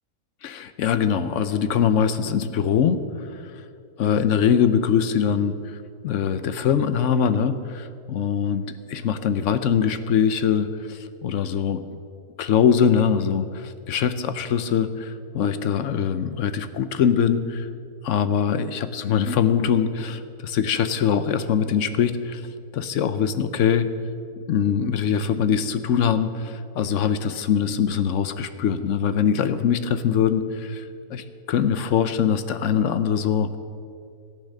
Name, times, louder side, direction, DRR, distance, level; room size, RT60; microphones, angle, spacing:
voice 1, 0.4-3.6 4.0-5.8 6.0-8.6 8.9-11.8 12.4-17.7 18.0-22.5 22.7-23.9 24.5-33.6, left 7 dB, 65° left, 11 dB, 0.8 m, -22 dB
13.5 x 8.9 x 6.5 m, 2.4 s
omnidirectional pair, 1.6 m